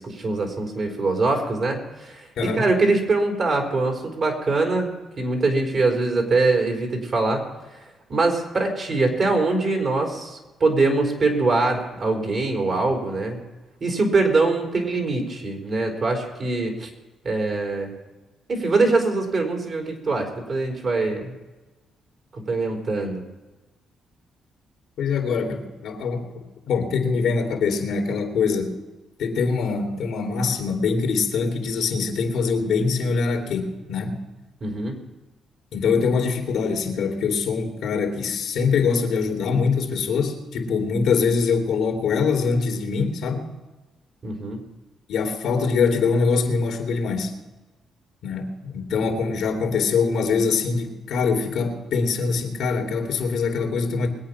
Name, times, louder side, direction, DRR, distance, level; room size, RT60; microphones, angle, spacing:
voice 1, 0.0-2.3 2.5-7.4 7.7-7.8 8.1-13.4 13.8-16.9 17.2-17.9 18.5-21.3 22.3-23.2 34.6-35.0 44.2-44.6, right 3 dB, 45° right, 2 dB, 4.0 m, -23 dB
voice 2, 2.4-2.7 25.0-28.8 29.2-34.2 35.7-43.5 45.1-47.3 48.2-54.1, left 5 dB, 75° left, 2 dB, 2.8 m, -23 dB
22.0 x 8.8 x 5.8 m, 1.2 s
cardioid pair, 90°, 0 cm